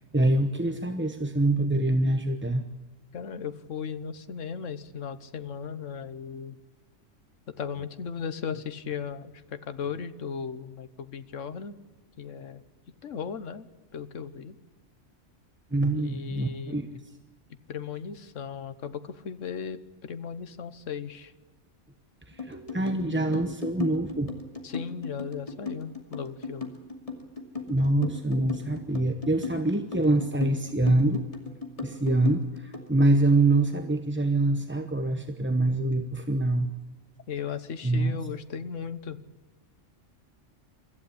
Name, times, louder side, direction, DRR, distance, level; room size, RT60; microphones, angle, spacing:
voice 1, 0.1-2.6 15.7-16.9 22.3-24.3 27.7-31.2 31.8-36.7 37.8-38.2, right 2 dB, 10° right, 6 dB, 0.8 m, -25 dB
voice 2, 3.1-6.6 7.5-11.8 12.2-12.6 13.0-14.6 15.9-16.8 17.7-21.3 24.6-26.7 37.3-39.2, left 7 dB, 80° left, 12 dB, 1.4 m, -36 dB
sound 1, 22.4-32.9, left 4 dB, 30° left, 2.5 m, -36 dB
24.5 x 14.5 x 8.5 m, 1.2 s
omnidirectional pair, 1.3 m